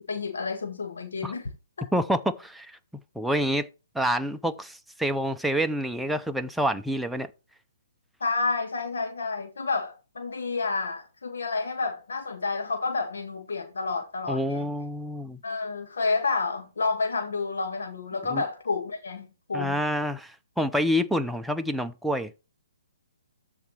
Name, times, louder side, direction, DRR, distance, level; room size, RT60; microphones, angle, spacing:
voice 1, 0.1-1.5 8.2-14.7 15.4-19.8, left 4 dB, 75° left, 1.9 m, -30 dB
voice 2, 1.9-2.8 3.2-3.7 3.9-7.3 14.3-15.4 18.3-18.4 19.5-22.3, equal, ahead, 0.5 m, -27 dB
13.5 x 4.9 x 3.2 m
hypercardioid pair, 145°, 0 cm